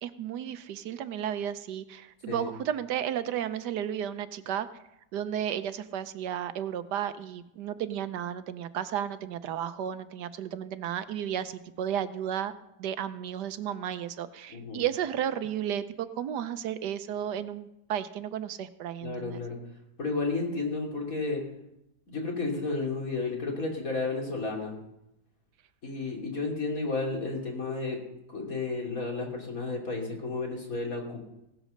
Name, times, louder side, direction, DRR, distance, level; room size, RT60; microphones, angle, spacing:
voice 1, 0.0-4.7 5.1-12.5 12.8-19.4, right 10 dB, 75° right, 13 dB, 1.3 m, -33 dB
voice 2, 14.5-14.8 19.0-19.6 20.0-21.4 22.1-24.7 25.8-28.0 28.3-31.2, left 3 dB, 55° left, 0 dB, 3.4 m, -32 dB
17.0 x 8.1 x 6.5 m, 0.86 s
omnidirectional pair, 1.8 m